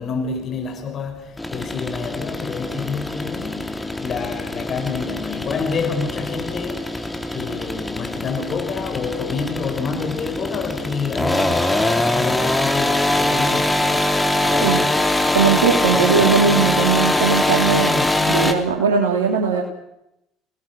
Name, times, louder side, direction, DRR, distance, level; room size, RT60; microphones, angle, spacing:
voice 1, 0.0-15.1 15.9-16.3 17.6-18.2, left 5 dB, 50° left, 5.9 m, -28 dB
sound 1, 1.4-18.5, left 1 dB, 10° left, 3.7 m, -22 dB
voice 2, 15.3-19.6, right 6 dB, 85° right, 3.0 m, -19 dB
28.5 x 20.0 x 6.2 m
hypercardioid pair, 65°, 0 cm